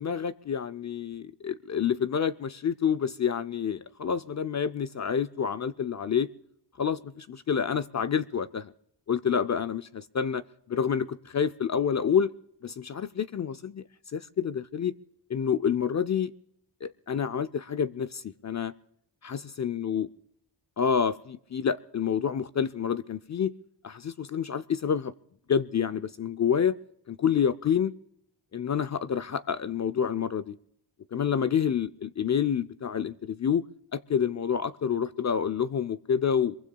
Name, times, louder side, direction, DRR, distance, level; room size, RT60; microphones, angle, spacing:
voice 1, 0.0-6.3 6.8-8.7 9.1-12.3 12.6-13.8 14.1-14.9 15.3-16.3 16.8-18.7 19.2-20.1 20.8-23.5 23.8-25.1 25.5-26.8 27.1-27.9 28.5-30.6 31.1-33.6 33.9-36.6, left 7 dB, 40° left, 11 dB, 0.5 m, -28 dB
23.5 x 22.5 x 2.3 m, 0.71 s
cardioid pair, 60°, 43 cm